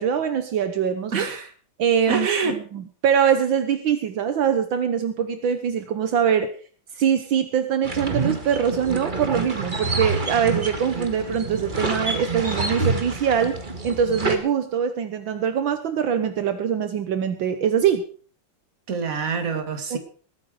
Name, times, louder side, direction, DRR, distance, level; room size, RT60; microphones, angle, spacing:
voice 1, 0.0-1.3 1.8-6.5 7.0-13.6 13.8-18.0 19.9-20.0, right 8 dB, 75° right, 9 dB, 1.8 m, -23 dB
voice 2, 1.1-1.5 2.1-2.6 18.9-20.0, right 5 dB, 45° right, 7 dB, 2.2 m, -26 dB
sound 1, 7.8-14.4, right 3 dB, 25° right, 1.8 m, -27 dB
20.5 x 9.1 x 4.9 m, 0.42 s
omnidirectional pair, 2.2 m